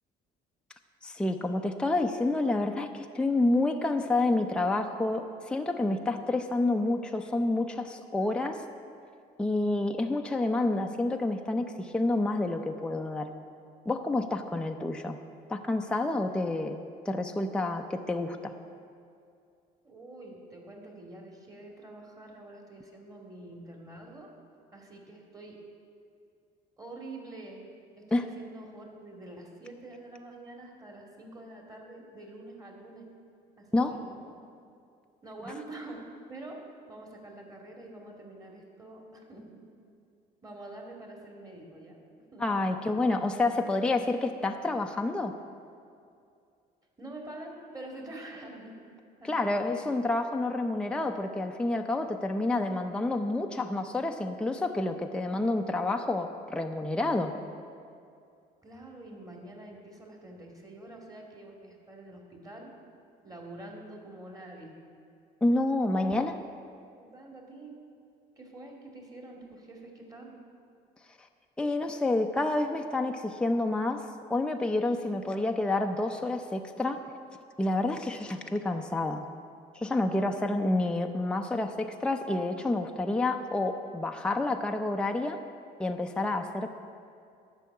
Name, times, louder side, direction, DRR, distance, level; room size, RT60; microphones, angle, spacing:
voice 1, 1.0-8.7 9.4-13.3 13.9-15.2 15.5-18.5 28.1-28.3 33.7-34.0 42.4-45.4 49.2-57.3 65.4-66.4 71.6-77.0 77.6-79.3 79.7-85.4 85.8-86.7, left 2 dB, 5° left, 4 dB, 0.6 m, -29 dB
voice 2, 19.8-24.3 24.7-25.6 26.8-27.7 28.0-33.1 33.6-34.4 35.2-39.6 40.4-42.0 42.3-42.6 47.0-48.8 49.2-49.9 58.6-62.7 63.2-64.8 66.0-66.2 67.1-67.8 68.4-70.4, right 2 dB, 20° right, 0 dB, 2.3 m, -46 dB
11.5 x 5.8 x 8.5 m, 2.4 s
cardioid pair, 110°, 17 cm